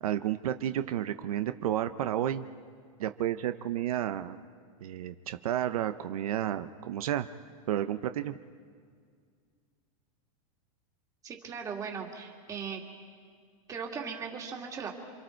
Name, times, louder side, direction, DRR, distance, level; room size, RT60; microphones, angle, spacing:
voice 1, 0.0-2.5 3.0-4.4 4.8-7.3 7.7-8.4, right 11 dB, 80° right, 10 dB, 0.9 m, -31 dB
voice 2, 11.2-12.8 13.7-15.0, right 6 dB, 20° right, 1 dB, 2.5 m, -38 dB
28.5 x 25.5 x 4.6 m, 2.1 s
supercardioid pair, 155°, 18 cm